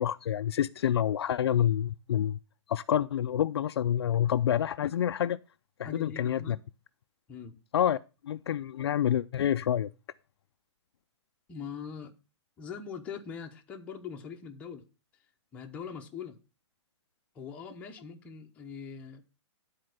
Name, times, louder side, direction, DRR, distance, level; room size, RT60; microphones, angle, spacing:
voice 1, 0.0-2.4 2.7-5.4 5.8-6.6 7.7-8.0 8.2-9.9, left 10 dB, 55° left, 0.4 m, -28 dB
voice 2, 5.8-6.6 7.3-7.6 11.5-12.1 12.6-14.8 15.5-16.4 17.3-19.2, left 6 dB, 10° left, 0.7 m, -42 dB
11.5 x 4.3 x 6.4 m
hypercardioid pair, 175°, 16 cm